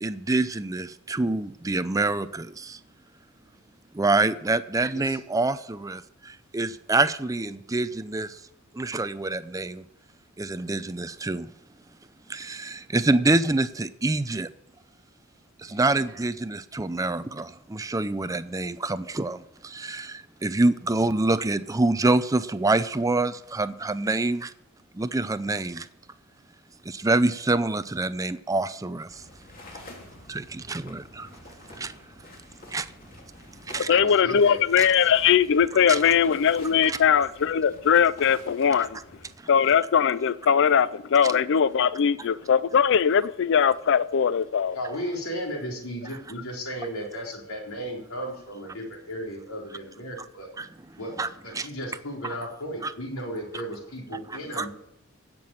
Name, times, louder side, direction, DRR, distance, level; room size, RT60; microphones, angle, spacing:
voice 1, 0.0-2.8 3.9-8.4 8.7-9.8 10.4-11.5 12.3-14.5 15.6-24.5 24.9-25.9 26.9-29.2 30.3-31.3 31.8-31.9 32.7-32.9 33.7-34.0 34.8-34.9 35.9-36.0 36.8-37.0 50.6-50.7 51.2-51.3 51.5-51.7 52.8-52.9 54.6-54.7, right 2 dB, 15° right, 0.5 m, -26 dB
voice 2, 15.6-16.1 33.7-34.6 44.7-50.5 51.0-54.7, equal, 75° left, 4.1 m, -35 dB
sound 1, 29.1-39.3, left 1 dB, 45° left, 3.1 m, -48 dB
voice 3, 33.8-39.0 39.5-44.8, left 7 dB, 60° left, 0.4 m, -21 dB
16.0 x 6.2 x 9.1 m
head